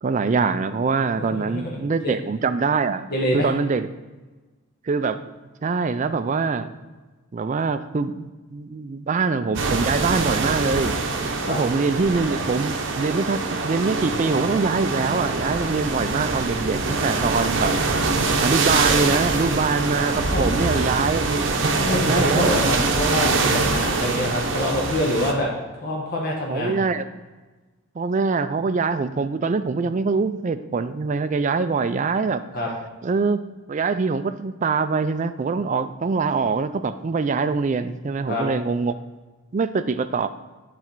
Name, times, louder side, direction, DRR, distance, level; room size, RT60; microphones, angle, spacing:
voice 1, 0.0-3.1 3.3-3.9 4.8-5.3 5.6-6.7 7.3-11.0 11.5-17.7 18.4-21.5 22.1-22.5 26.5-27.0 28.0-32.4 33.0-33.4 33.7-38.9 39.5-40.3, right 4 dB, 35° right, 11 dB, 0.3 m, -24 dB
voice 2, 1.2-1.8 2.0-2.1 3.1-3.5 11.4-11.6 20.3-20.5 21.8-26.8 32.5-32.7 38.3-38.5, left 1 dB, 45° left, -2 dB, 1.0 m, -25 dB
sound 1, 9.5-25.3, right 3 dB, 55° right, 0.7 m, -24 dB
8.0 x 4.2 x 4.5 m, 1.2 s
head